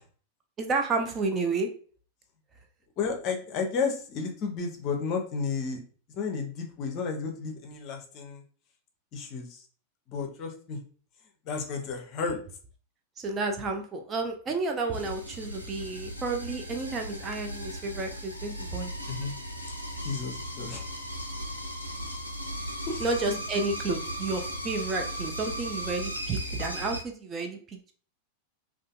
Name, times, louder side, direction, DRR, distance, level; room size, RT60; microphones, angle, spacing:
voice 1, 0.6-1.7 13.2-18.9 23.0-27.9, right 3 dB, 25° right, 3 dB, 0.4 m, -31 dB
voice 2, 3.0-5.8 6.1-8.4 9.1-9.6 10.1-10.8 11.4-12.4 19.1-19.3 19.6-19.7 20.0-20.9 22.9-23.4, left 5 dB, 40° left, 3 dB, 0.6 m, -32 dB
sound 1, 14.9-27.0, equal, 90° left, 0.4 m, -37 dB
2.5 x 2.4 x 2.3 m, 0.43 s
figure-of-eight pair, 90°, 0 cm